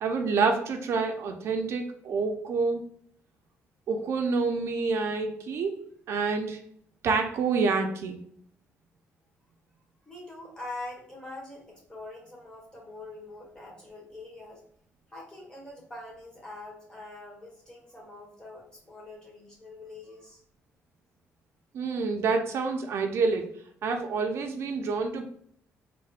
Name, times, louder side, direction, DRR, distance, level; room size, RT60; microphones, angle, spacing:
voice 1, 0.0-2.8 3.9-5.8 6.1-6.6 7.0-8.2 21.7-23.5 23.8-25.2, right 4 dB, 60° right, 4 dB, 0.4 m, -27 dB
voice 2, 10.0-14.6 15.1-20.4, left 2 dB, 15° left, -3 dB, 1.2 m, -44 dB
4.0 x 2.1 x 2.4 m, 0.64 s
cardioid pair, 130°, 5 cm